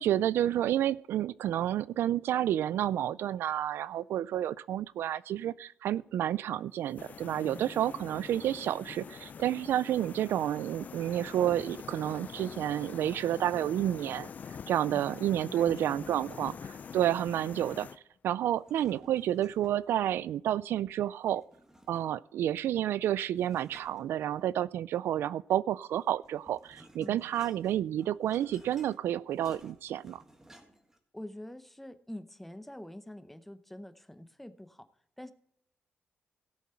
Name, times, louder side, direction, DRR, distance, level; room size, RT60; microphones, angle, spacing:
voice 1, 0.0-14.3 14.7-16.5 16.9-17.9 18.2-21.4 21.9-30.2, right 11 dB, 90° right, 19 dB, 0.3 m, -30 dB
sound 1, 7.0-18.0, left 6 dB, 45° left, 0.4 m, -45 dB
voice 2, 7.4-7.8 14.9-16.6 27.0-27.3 31.1-34.9 35.2-35.3, left 1 dB, 5° left, 12 dB, 0.8 m, -46 dB
sound 2, 18.5-19.9 21.3-22.3 23.3-24.7 25.9-31.0, right 1 dB, 10° right, 1.7 m, -57 dB
17.0 x 7.2 x 4.4 m, 0.70 s
cardioid pair, 120°, 4 cm